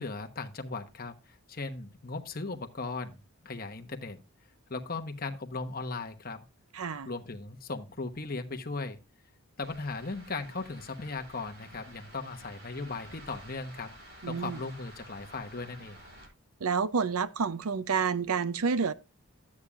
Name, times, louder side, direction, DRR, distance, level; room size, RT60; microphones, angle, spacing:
voice 1, 0.0-3.2 3.4-4.2 4.7-6.4 7.1-9.0 9.6-13.9 14.3-16.0, left 3 dB, 40° left, 1.1 m, -37 dB
voice 2, 6.7-7.1 14.2-14.6 16.6-18.9, right 5 dB, 85° right, 0.6 m, -29 dB
sound 1, 9.6-16.3, right 1 dB, 60° right, 6.3 m, -51 dB
13.0 x 8.5 x 2.5 m
head